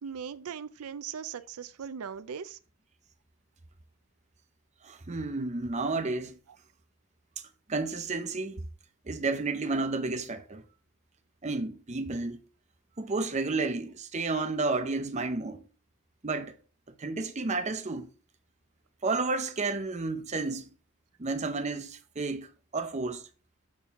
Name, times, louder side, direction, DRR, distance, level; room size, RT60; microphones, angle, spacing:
voice 1, 0.0-2.6, right 7 dB, 80° right, 0.5 m, -39 dB
voice 2, 4.8-6.3 7.7-8.6 9.1-10.6 11.4-12.4 13.0-15.6 16.2-16.6 17.0-18.1 19.0-20.6 21.2-23.3, right 3 dB, 30° right, 0.6 m, -31 dB
7.4 x 4.3 x 3.6 m
head